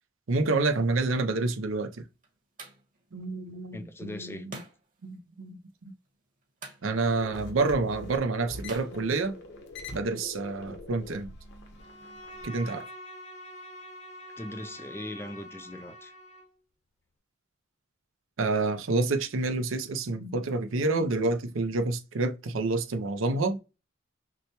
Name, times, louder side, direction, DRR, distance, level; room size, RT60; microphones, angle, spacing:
voice 1, 0.3-2.1 3.1-4.6 5.0-5.9 6.8-9.4 9.9-11.3 12.4-12.9 18.4-23.6, right 3 dB, 80° right, 0.6 m, -28 dB
sound 1, 1.4-9.9, right 2 dB, 45° right, 1.3 m, -51 dB
voice 2, 3.7-4.5 14.4-16.1, left 1 dB, 10° left, 0.4 m, -40 dB
sound 2, 7.0-12.4, left 2 dB, 60° left, 1.0 m, -44 dB
Bowed string instrument, 11.8-16.6, equal, 35° left, 0.9 m, -45 dB
6.0 x 2.2 x 2.9 m
head